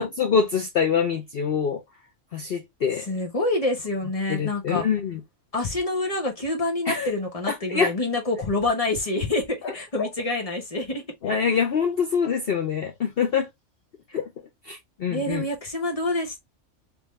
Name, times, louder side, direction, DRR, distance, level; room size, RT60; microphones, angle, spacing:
voice 1, 0.0-1.8 2.3-3.1 4.3-5.2 6.9-7.1 7.5-7.9 10.0-10.1 11.2-13.5 14.1-14.3 14.6-15.5, left 6 dB, 55° left, 0.8 m, -25 dB
voice 2, 3.1-4.8 5.5-11.4 15.1-16.4, left 2 dB, 30° left, 1.1 m, -27 dB
3.6 x 2.9 x 3.1 m
omnidirectional pair, 1.4 m